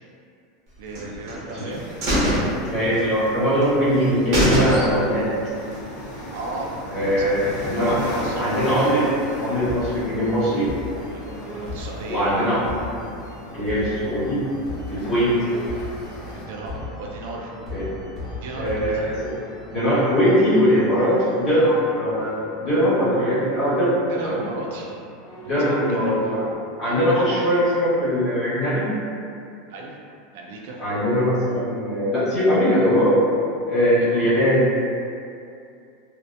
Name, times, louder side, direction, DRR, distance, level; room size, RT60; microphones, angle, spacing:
voice 1, 0.8-1.9 6.3-8.4 11.1-12.7 15.2-15.5 16.3-17.5 18.4-19.1 24.1-25.0 25.5-26.1 27.1-27.3 29.7-30.0 30.3-30.8 34.0-34.3, right 2 dB, 70° right, -1 dB, 0.3 m, -35 dB
sound 1, 0.9-1.6 2.0-3.3 3.6-3.7 4.0-4.1 4.3-5.2 5.6-5.7, equal, 50° right, 0.8 m, -22 dB
sound 2, 1.7-16.5, left 1 dB, 55° left, 0.5 m, -37 dB
voice 2, 2.7-5.3 6.9-8.0 8.4-9.1 9.4-10.7 12.1-12.6 13.5-14.4 14.9-15.3 17.7-17.8 18.6-19.3 19.7-23.9 24.2-24.4 25.4-26.4 26.8-28.9 30.8-33.2 33.7-34.7, equal, 30° left, -11 dB, 1.1 m, -21 dB
sound 3, 8.8-26.5, left 2 dB, 15° left, 0.7 m, -38 dB
2.7 x 2.0 x 2.2 m, 2.5 s
supercardioid pair, 155°, 0 cm